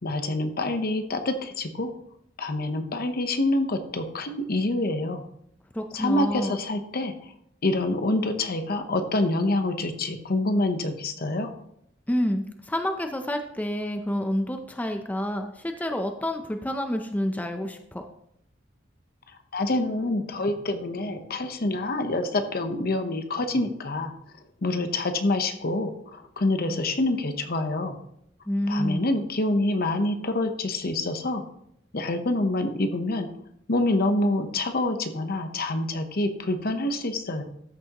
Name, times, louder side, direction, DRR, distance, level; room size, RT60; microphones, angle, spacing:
voice 1, 0.0-1.9 2.4-5.2 5.9-7.1 7.6-11.5 19.5-24.1 24.6-28.0 28.7-31.4 31.9-33.3 33.7-37.4, left 2 dB, 55° left, 7 dB, 0.9 m, -26 dB
voice 2, 5.7-6.6 12.1-18.0 28.5-29.1, left 1 dB, 10° left, 5 dB, 0.5 m, -28 dB
13.5 x 6.1 x 2.9 m, 0.73 s
head